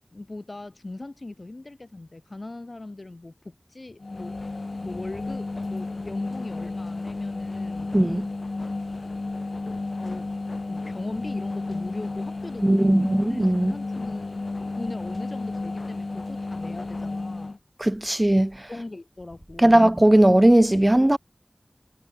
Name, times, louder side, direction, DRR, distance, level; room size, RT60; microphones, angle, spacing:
voice 1, 0.1-4.4 4.8-8.0 10.0-10.3 10.7-14.4 14.7-17.6 18.7-19.8, left 2 dB, 60° left, 6.4 m, -39 dB
sound 1, 4.0-17.6, left 3 dB, 80° left, 0.9 m, -32 dB
voice 2, 7.9-8.3 12.6-13.7 17.8-18.5 19.6-21.2, right 1 dB, 25° right, 0.5 m, -18 dB
wide cardioid pair, 45°, 0 cm